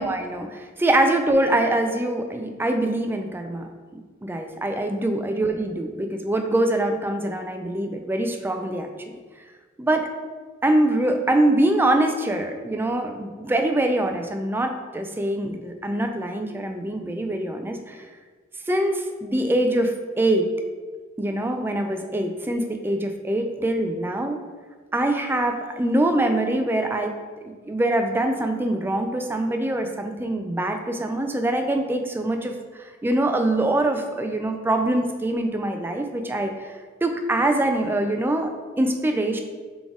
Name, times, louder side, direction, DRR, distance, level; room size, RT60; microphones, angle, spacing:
voice 1, 0.0-3.7 3.9-8.9 9.8-10.1 10.6-18.0 18.7-20.5 21.2-24.4 24.9-27.1 27.5-32.6 33.0-36.7 37.0-39.4, right 1 dB, 10° right, 5 dB, 0.3 m, -24 dB
4.0 x 3.4 x 3.6 m, 1.5 s
head